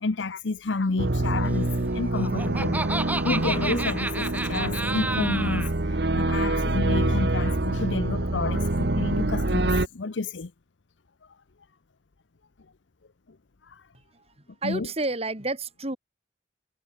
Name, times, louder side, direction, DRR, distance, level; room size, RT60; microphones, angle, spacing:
voice 1, 0.0-2.8 3.2-10.5 13.7-13.8 14.6-14.9, left 3 dB, 90° left, 0.8 m, -30 dB
sound 1, 1.0-9.9, right 2 dB, 65° right, 1.4 m, -26 dB
Laughter, 1.9-5.7, right 2 dB, 10° right, 2.0 m, -31 dB
voice 2, 14.6-16.0, right 2 dB, 35° right, 3.9 m, -30 dB
head